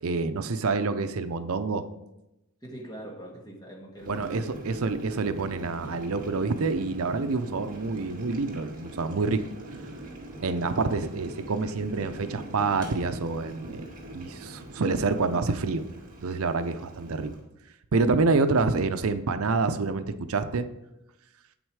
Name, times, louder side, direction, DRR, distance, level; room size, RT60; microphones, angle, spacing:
voice 1, 0.0-1.9 4.1-9.4 10.4-13.8 14.1-15.8 16.2-17.3 17.9-20.7, right 3 dB, 75° right, 10 dB, 0.6 m, -27 dB
voice 2, 2.6-4.5 10.7-10.9, right 1 dB, 20° left, -1 dB, 1.8 m, -43 dB
Boiling, 3.9-17.4, right 1 dB, 40° right, 1.8 m, -42 dB
8.0 x 7.7 x 4.8 m, 0.90 s
head